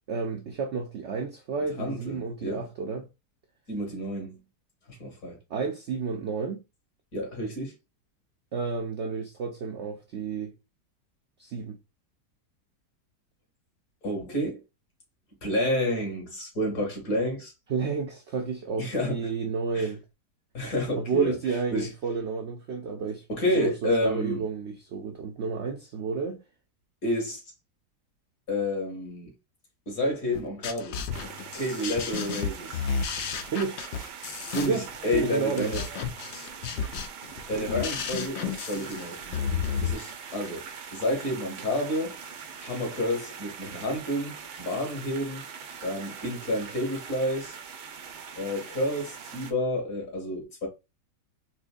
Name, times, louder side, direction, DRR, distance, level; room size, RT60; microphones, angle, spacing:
voice 1, 0.1-3.1 5.5-6.6 8.5-10.5 11.4-11.8 17.7-20.0 20.9-23.2 23.5-26.4 33.4-34.1 34.6-34.9 35.1-35.7, right 5 dB, 70° right, 0.6 m, -31 dB
voice 2, 1.8-2.6 3.7-4.4 4.9-5.4 7.1-7.7 14.0-14.6 15.4-17.5 18.8-19.2 19.7-19.9 20.5-21.4 21.7-21.9 23.3-24.4 27.0-27.4 28.5-29.3 29.9-31.0 31.5-32.8 34.5-34.8 35.0-35.8 37.5-39.4 39.8-42.2 42.6-44.3 44.6-45.4 45.8-47.5 48.4-50.7, left 1 dB, 60° left, 2.1 m, -29 dB
sound 1, 30.3-39.9, left 6 dB, 85° left, 0.5 m, -32 dB
sound 2, 31.1-49.5, right 6 dB, 85° right, 1.3 m, -42 dB
4.4 x 2.8 x 2.3 m
omnidirectional pair, 1.8 m